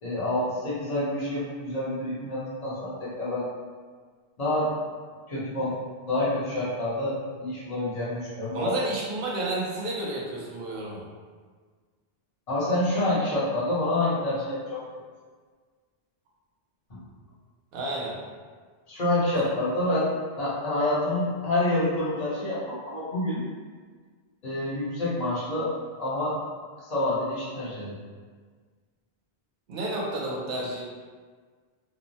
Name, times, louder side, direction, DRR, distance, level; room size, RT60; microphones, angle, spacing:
voice 1, 0.0-3.5 4.4-4.7 5.3-5.7 6.1-8.7 12.5-14.8 16.9-17.0 18.9-20.1 20.4-23.4 24.4-25.7 26.0-26.4 26.8-28.0, left 1 dB, 40° left, -8 dB, 0.9 m, -27 dB
voice 2, 8.5-11.1 17.7-18.2 19.3-19.6 29.7-30.8, right 2 dB, 65° right, -4 dB, 0.8 m, -31 dB
3.0 x 2.1 x 2.6 m, 1.5 s
omnidirectional pair, 1.0 m